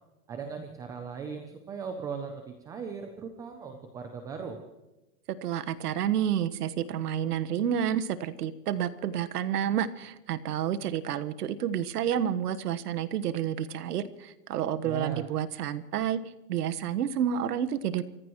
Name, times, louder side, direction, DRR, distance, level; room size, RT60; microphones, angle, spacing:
voice 1, 0.3-4.6 14.8-15.3, right 6 dB, 10° right, 5 dB, 0.4 m, -38 dB
voice 2, 5.4-16.2 16.5-18.0, right 9 dB, 75° right, 12 dB, 1.4 m, -29 dB
29.0 x 16.0 x 3.1 m, 1.1 s
hypercardioid pair, 145°, 48 cm